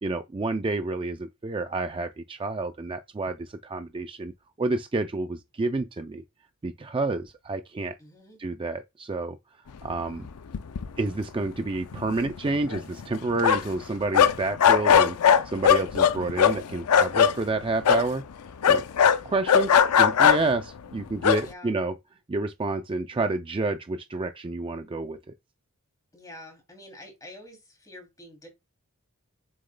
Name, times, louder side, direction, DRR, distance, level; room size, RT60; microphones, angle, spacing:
voice 1, 0.0-4.3 4.6-6.2 6.6-7.9 8.4-9.4 9.8-10.3 11.0-15.2 15.4-18.2 18.7-18.8 19.2-21.9 22.3-25.2, right 3 dB, 25° right, 0.4 m, -29 dB
voice 2, 8.0-8.4 21.4-21.8 26.1-28.5, left 1 dB, 15° left, 2.9 m, -47 dB
sound 1, 10.2-10.3 10.5-11.2 11.5-11.6 11.9-13.8 14.1-17.3 17.8-18.1 18.6-20.6 21.2-21.4, left 8 dB, 85° left, 0.5 m, -20 dB
7.6 x 6.4 x 2.2 m
head